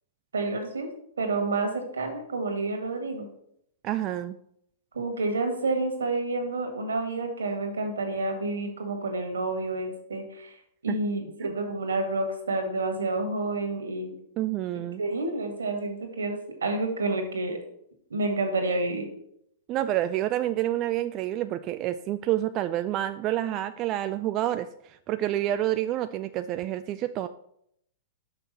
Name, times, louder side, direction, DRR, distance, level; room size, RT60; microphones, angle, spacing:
voice 1, 0.3-0.9 1.2-3.3 4.9-10.6 10.8-14.2 15.0-17.6 18.1-19.1, right 2 dB, 85° right, 4 dB, 1.8 m, -29 dB
voice 2, 3.8-4.3 10.9-11.0 11.4-11.5 14.4-15.0 19.7-27.3, right 13 dB, 35° right, 10 dB, 0.3 m, -28 dB
5.8 x 5.7 x 5.4 m, 0.73 s
hypercardioid pair, 110°, 0 cm